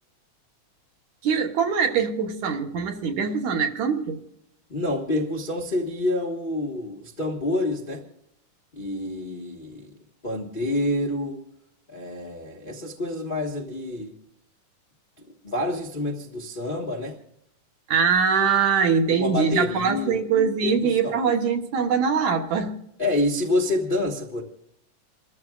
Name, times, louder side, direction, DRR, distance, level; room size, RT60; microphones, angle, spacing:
voice 1, 1.2-4.2 17.9-22.7, right 6 dB, 65° right, 4 dB, 2.5 m, -23 dB
voice 2, 4.7-8.0 8.7-9.9 10.2-11.4 11.9-14.1 15.2-17.2 19.1-20.2 20.6-21.2 23.0-24.4, left 1 dB, 75° left, -2 dB, 0.4 m, -28 dB
28.5 x 14.0 x 2.4 m, 0.76 s
omnidirectional pair, 3.7 m